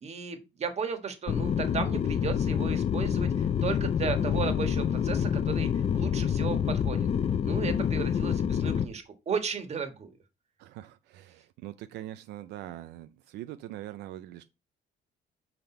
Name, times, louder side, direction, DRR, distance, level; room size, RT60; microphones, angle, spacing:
voice 1, 0.0-7.1 7.4-10.1, right 6 dB, 40° right, 1.6 m, -35 dB
sound 1, 1.3-8.8, left 8 dB, 35° left, 0.5 m, -27 dB
voice 2, 10.6-14.4, right 13 dB, 85° right, 0.5 m, -42 dB
5.9 x 5.2 x 4.5 m
cardioid pair, 110°, 17 cm